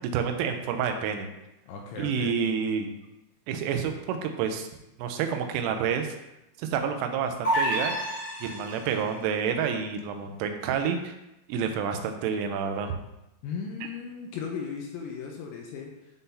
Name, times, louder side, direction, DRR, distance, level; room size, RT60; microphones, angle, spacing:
voice 1, 0.1-1.3 2.0-2.9 3.5-4.7 5.0-6.1 6.6-8.0 8.4-11.1 11.5-12.9, right 7 dB, 90° right, 5 dB, 3.2 m, -29 dB
voice 2, 1.7-2.4 8.4-9.0 13.4-16.1, left 5 dB, 80° left, 1 dB, 2.8 m, -37 dB
sound 1, 7.4-9.1, right 1 dB, 30° left, 1.6 m, -28 dB
11.0 x 3.8 x 2.7 m, 0.90 s
omnidirectional pair, 5.7 m